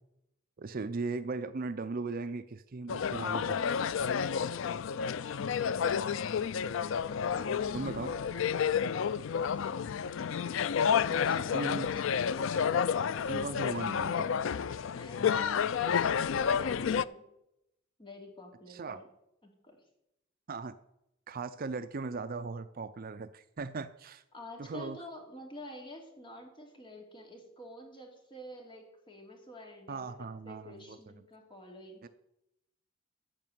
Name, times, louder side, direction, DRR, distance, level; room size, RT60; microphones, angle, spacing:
voice 1, 0.6-3.6 7.7-8.1 11.5-12.0 13.3-14.3 18.7-19.0 20.5-20.8 21.3-24.2 24.6-25.0 29.9-31.0 32.0-32.1, right 3 dB, 45° right, 12 dB, 0.5 m, -38 dB
sound 1, 2.9-17.1, left 7 dB, 65° left, 0.4 m, -30 dB
voice 2, 7.3-9.6 10.9-11.8 14.9-17.2 18.0-19.0 19.4-19.8 24.3-32.1, left 1 dB, 25° left, 2 dB, 2.8 m, -49 dB
14.5 x 5.3 x 9.2 m, 0.84 s
head